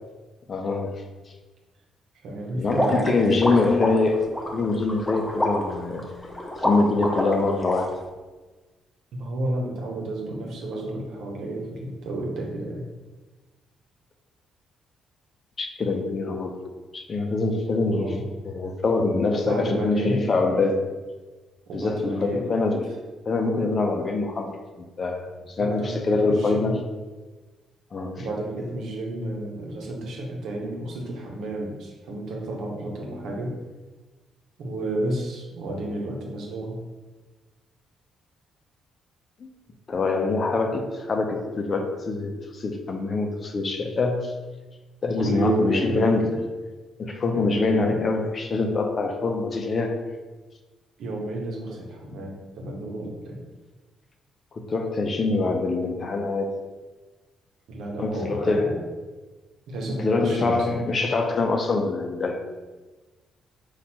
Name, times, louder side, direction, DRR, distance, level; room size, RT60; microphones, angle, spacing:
voice 1, 0.5-1.0 2.5-4.3 4.5-6.1 6.6-7.9 15.6-16.6 16.9-18.2 18.4-20.8 21.7-22.9 23.3-26.8 27.9-28.2 39.4-39.5 39.9-44.3 45.0-46.4 47.0-50.0 54.5-56.5 58.0-58.7 60.0-62.4, left 3 dB, 40° left, 4 dB, 0.6 m, -24 dB
voice 2, 2.2-3.5 9.1-12.8 17.9-18.2 19.3-20.2 21.7-22.4 25.6-26.7 28.2-33.6 34.6-36.8 45.2-46.3 47.3-48.0 51.0-53.4 57.7-58.8 59.7-60.8, right 1 dB, 75° right, 0 dB, 0.9 m, -31 dB
sound 1, 2.7-7.7, left 1 dB, 10° left, 0.7 m, -27 dB
4.3 x 2.5 x 4.3 m, 1.3 s
cardioid pair, 90°, 0 cm